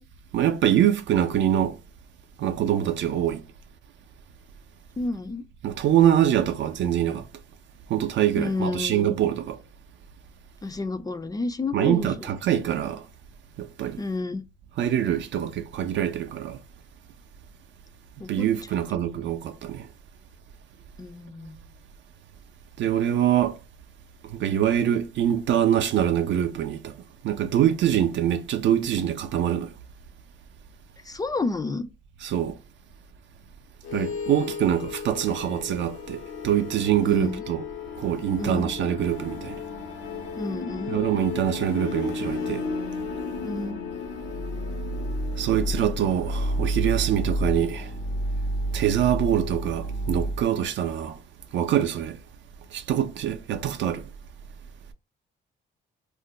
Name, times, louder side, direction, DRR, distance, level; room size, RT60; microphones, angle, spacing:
voice 1, 0.3-1.8 2.4-3.4 5.6-7.2 7.9-9.6 11.7-13.0 13.6-14.0 14.8-16.6 18.3-19.8 22.8-23.5 24.3-26.9 27.2-29.7 32.2-32.6 33.9-37.7 38.0-39.6 40.9-42.7 45.4-47.9 48.7-51.2 51.5-52.2 52.7-54.0, right 10 dB, 70° right, 0.5 m, -24 dB
voice 2, 5.0-5.4 8.4-9.2 10.6-12.3 14.0-14.4 18.2-18.5 21.0-21.6 31.0-31.9 37.0-37.4 38.4-38.7 40.4-41.0 43.4-43.8, left 3 dB, 20° left, 0.3 m, -30 dB
sound 1, 33.8-50.4, left 1 dB, 85° left, 0.7 m, -31 dB
2.4 x 2.2 x 3.7 m
cardioid pair, 90°, 20 cm